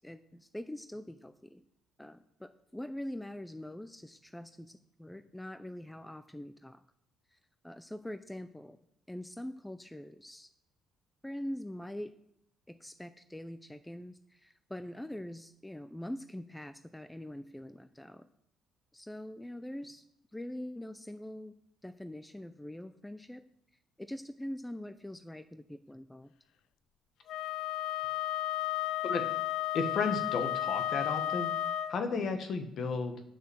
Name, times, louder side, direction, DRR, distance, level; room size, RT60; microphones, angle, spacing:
voice 1, 0.0-1.6 2.0-6.8 7.3-7.4 7.6-8.8 9.1-10.5 11.2-12.1 12.7-18.2 18.9-20.0 20.3-21.5 21.8-23.4 24.0-26.3 32.1-32.3, left 1 dB, 5° left, 11 dB, 0.5 m, -43 dB
Wind instrument woodwind instrument, 27.3-32.0, left 13 dB, 70° left, 0.3 m, -33 dB
voice 2, 29.7-31.5 31.9-33.2, left 4 dB, 50° left, 7 dB, 1.5 m, -33 dB
8.8 x 6.7 x 6.3 m, 0.80 s
cardioid pair, 115°, 0 cm